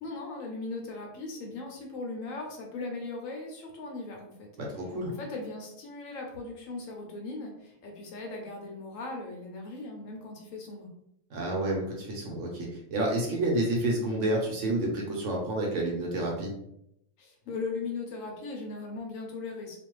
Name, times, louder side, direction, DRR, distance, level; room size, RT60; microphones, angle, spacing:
voice 1, 0.0-4.5 4.8-10.9 17.2-19.8, left 3 dB, 70° left, 1 dB, 0.9 m, -38 dB
voice 2, 4.6-5.1 11.3-16.5, right 1 dB, 65° right, -1 dB, 0.9 m, -29 dB
2.5 x 2.3 x 3.0 m, 0.78 s
omnidirectional pair, 1.5 m